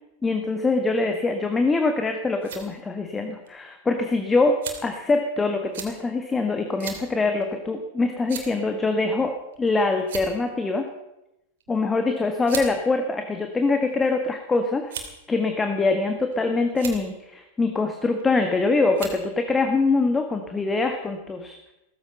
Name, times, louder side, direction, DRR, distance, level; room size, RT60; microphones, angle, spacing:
voice 1, 0.2-10.9 11.7-14.9 15.3-21.6, left 3 dB, 15° left, 5 dB, 1.6 m, -24 dB
sound 1, 2.1-2.6 3.5-3.6 4.6-5.0 5.7-5.9 6.8-7.0 7.4-7.5 8.3-8.6 9.5-9.7 10.0-10.5 11.6-11.8 12.5-12.7 13.5-14.1 14.9-15.3 16.0-16.4 16.7-17.0 18.2-18.5 18.9-19.2, right 7 dB, 60° right, 3.0 m, -36 dB
16.5 x 15.0 x 5.5 m, 0.90 s
figure-of-eight pair, 90°, 0 cm